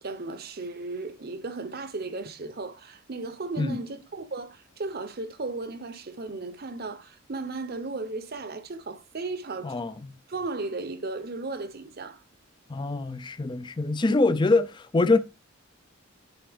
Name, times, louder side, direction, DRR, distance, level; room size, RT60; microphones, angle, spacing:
voice 1, 0.0-9.7 10.3-12.2, right 3 dB, 45° right, 0.8 m, -35 dB
voice 2, 9.6-10.2 12.7-15.2, left 3 dB, 20° left, 0.4 m, -24 dB
11.0 x 4.1 x 3.5 m
head